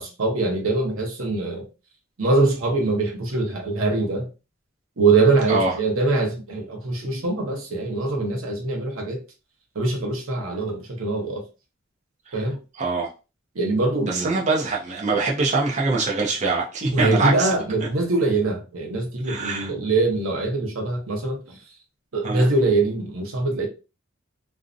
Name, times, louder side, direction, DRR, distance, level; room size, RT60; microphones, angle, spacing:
voice 1, 0.0-1.6 2.2-4.3 5.0-9.2 9.7-11.4 12.3-12.6 13.5-14.4 16.9-21.6 22.1-23.7, right 3 dB, 80° right, 0.8 m, -23 dB
voice 2, 12.8-13.1 14.1-17.5 19.3-19.7 22.2-22.4, right 3 dB, 35° right, 0.5 m, -23 dB
2.5 x 2.0 x 2.5 m
head